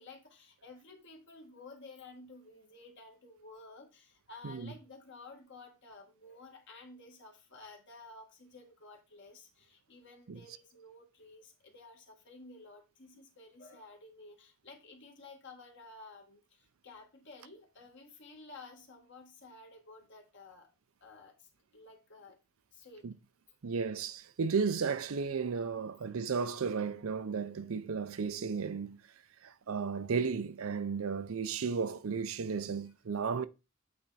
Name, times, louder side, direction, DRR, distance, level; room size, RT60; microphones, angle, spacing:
voice 1, 0.0-20.7 21.0-22.4 22.7-23.1 32.9-33.3, left 3 dB, 55° left, 1.6 m, -53 dB
voice 2, 23.6-29.0 29.4-33.5, right 5 dB, 70° right, 0.5 m, -34 dB
8.7 x 3.4 x 4.1 m
head